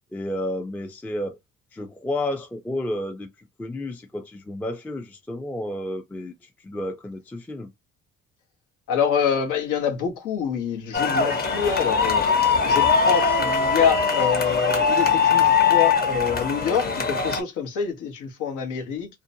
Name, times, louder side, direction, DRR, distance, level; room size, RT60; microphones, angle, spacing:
voice 1, 0.1-1.4 1.7-3.3 3.6-7.7, left 1 dB, 5° left, 0.3 m, -31 dB
voice 2, 8.9-12.2 12.7-19.1, left 7 dB, 90° left, 0.9 m, -26 dB
sound 1, 10.9-17.4, left 5 dB, 30° left, 0.7 m, -21 dB
2.6 x 2.1 x 2.6 m
cardioid pair, 90°, 30 cm